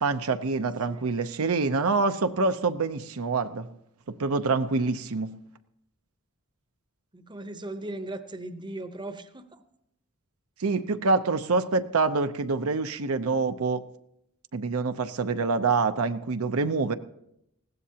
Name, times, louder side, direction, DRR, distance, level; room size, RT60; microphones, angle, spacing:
voice 1, 0.0-3.7 4.1-5.3 10.6-13.8 14.5-16.9, right 4 dB, 80° right, 9 dB, 0.7 m, -26 dB
voice 2, 7.1-9.6, right 2 dB, 20° right, 10 dB, 0.8 m, -38 dB
20.0 x 16.0 x 2.8 m, 0.79 s
head